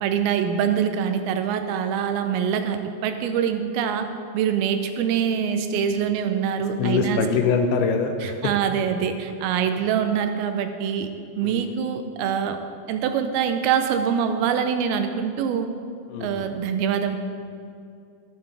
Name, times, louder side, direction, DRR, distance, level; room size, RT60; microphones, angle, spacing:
voice 1, 0.0-4.1 4.3-7.2 8.2-11.1 11.4-12.6 12.9-15.7 16.2-17.2, right 8 dB, 90° right, 7 dB, 2.6 m, -24 dB
voice 2, 6.8-8.4 11.4-11.6 16.1-16.5, left 5 dB, 90° left, 4 dB, 2.5 m, -23 dB
12.5 x 9.1 x 3.3 m, 2.4 s
omnidirectional pair, 4.2 m